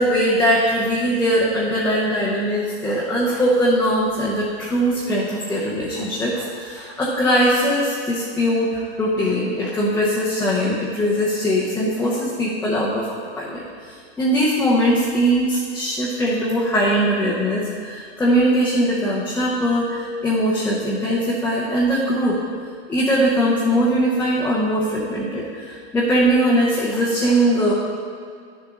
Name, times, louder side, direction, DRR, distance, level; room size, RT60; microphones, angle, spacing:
voice 1, 0.0-22.4 22.9-27.7, equal, 5° left, -7 dB, 0.8 m, -21 dB
9.5 x 7.0 x 3.8 m, 2.2 s
hypercardioid pair, 150°, 34 cm